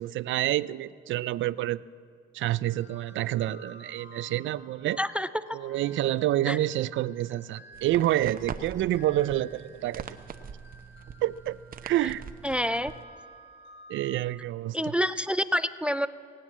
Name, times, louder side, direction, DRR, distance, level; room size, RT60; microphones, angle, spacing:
voice 1, 0.0-1.8 2.3-5.0 5.5-10.2 11.2-11.6 11.8-12.2 13.9-14.9, right 14 dB, 75° right, 19 dB, 0.4 m, -28 dB
sound 1, 2.6-14.2, right 1 dB, 65° left, 3.6 m, -53 dB
voice 2, 5.0-5.6 6.5-6.6 12.4-12.9 14.7-16.1, equal, 5° right, 15 dB, 0.4 m, -27 dB
sound 2, 7.7-13.0, right 7 dB, 45° right, 0.8 m, -42 dB
18.5 x 9.3 x 7.3 m, 2.3 s
cardioid pair, 90°, 20 cm